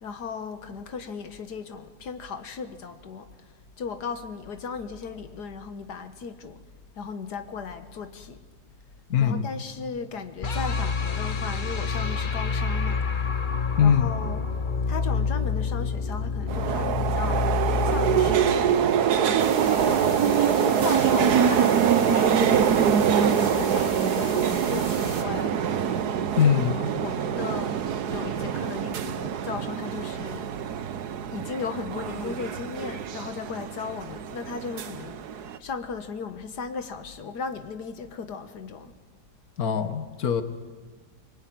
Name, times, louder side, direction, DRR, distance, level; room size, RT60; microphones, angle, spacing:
voice 1, 0.0-6.6 7.0-8.4 9.2-13.0 13.8-14.4 14.9-18.8 19.6-22.7 23.1-25.7 26.4-30.8 31.3-38.9, left 5 dB, 80° left, 8 dB, 1.9 m, -36 dB
voice 2, 9.1-9.5 13.8-14.1 19.9-20.0 26.4-26.8 39.6-40.4, left 8 dB, 65° left, 10 dB, 1.8 m, -22 dB
sound 1, 10.4-19.5, left 5 dB, 35° left, 1.1 m, -28 dB
sound 2, 16.5-35.6, right 8 dB, 75° right, 1.5 m, -24 dB
sound 3, 19.4-25.2, right 3 dB, 35° right, 2.2 m, -37 dB
24.5 x 24.0 x 9.4 m, 1.4 s
omnidirectional pair, 1.7 m